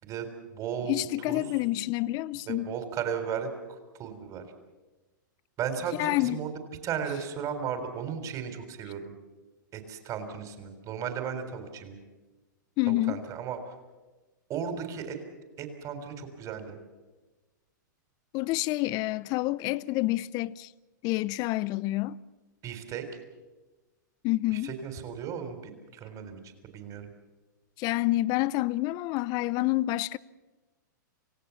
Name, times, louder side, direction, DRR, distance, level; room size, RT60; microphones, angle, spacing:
voice 1, 0.0-1.0 1.3-1.5 2.5-3.5 4.0-4.4 5.6-6.5 6.8-9.1 9.7-12.0 12.9-13.6 14.5-15.2 15.6-16.8 22.6-23.1 24.5-25.6 25.9-27.1, right 7 dB, 30° right, 3.8 m, -35 dB
voice 2, 0.9-2.7 6.0-6.4 12.8-13.2 18.3-20.7 21.0-22.2 24.2-24.7 27.8-30.2, left 18 dB, 35° left, 0.6 m, -28 dB
28.0 x 17.0 x 7.2 m
hypercardioid pair, 125°, 11 cm